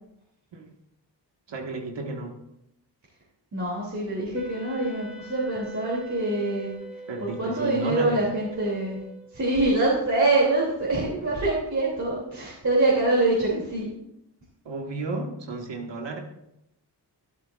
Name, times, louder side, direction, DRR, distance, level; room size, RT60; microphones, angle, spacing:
voice 1, 1.5-2.4 7.1-8.2 14.7-16.2, right 3 dB, 85° right, 2 dB, 1.7 m, -33 dB
voice 2, 3.5-6.7 7.2-9.0 9.3-13.9, right 2 dB, 40° right, -6 dB, 2.9 m, -25 dB
Wind instrument woodwind instrument, 4.3-9.5, right 1 dB, ahead, 1.1 m, -43 dB
12.0 x 12.0 x 2.5 m, 0.82 s
wide cardioid pair, 100°, 42 cm